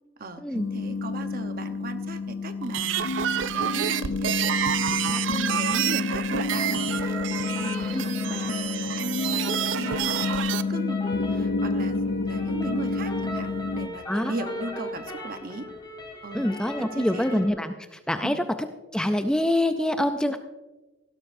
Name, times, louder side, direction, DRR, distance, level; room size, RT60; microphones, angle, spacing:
sound 1, 0.5-13.9, left 3 dB, 70° left, 0.5 m, -29 dB
voice 1, 0.7-11.0 11.3-15.7 16.2-16.5 16.8-17.4 18.2-18.4, right 2 dB, 45° right, 8 dB, 0.9 m, -37 dB
sound 2, 2.6-10.6, right 10 dB, 70° right, 0.4 m, -29 dB
sound 3, 6.5-17.5, left 1 dB, 20° left, 3.5 m, -38 dB
voice 2, 16.3-18.4 18.9-20.4, left 1 dB, 5° left, 8 dB, 0.4 m, -25 dB
16.5 x 12.5 x 2.6 m, 1.1 s
head